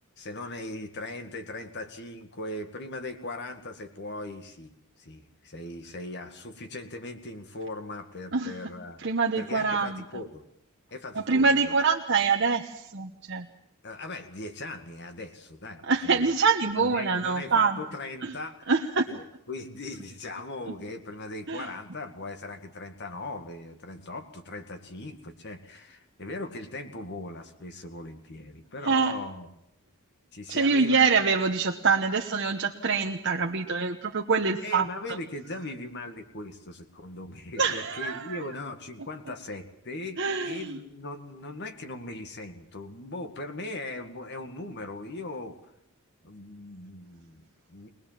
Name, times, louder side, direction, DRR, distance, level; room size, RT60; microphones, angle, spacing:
voice 1, 0.2-9.0 9.4-10.4 10.9-11.7 13.8-16.3 16.8-18.7 19.1-29.5 30.3-31.1 34.6-40.2 40.4-45.6 46.2-47.9, left 2 dB, 55° left, 7 dB, 2.0 m, -39 dB
voice 2, 9.0-10.0 11.1-13.5 15.8-17.8 18.2-18.3 18.7-19.1 21.5-21.7 28.8-29.2 30.5-34.9 37.6-38.4 40.2-40.8, right 4 dB, 55° right, 2 dB, 1.2 m, -25 dB
23.0 x 20.0 x 7.5 m, 0.76 s
head